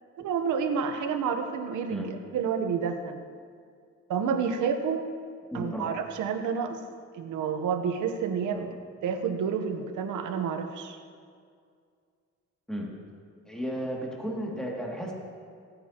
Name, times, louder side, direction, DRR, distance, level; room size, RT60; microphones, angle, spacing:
voice 1, 0.2-3.2 4.1-5.1 5.5-6.8 7.1-8.7 9.0-11.0, right 6 dB, 80° right, 6 dB, 1.0 m, -29 dB
voice 2, 5.5-5.9 8.5-8.6 12.7-12.9 13.5-15.1, equal, ahead, -2 dB, 2.4 m, -34 dB
16.5 x 9.1 x 2.9 m, 2.2 s
cardioid pair, 90°, 30 cm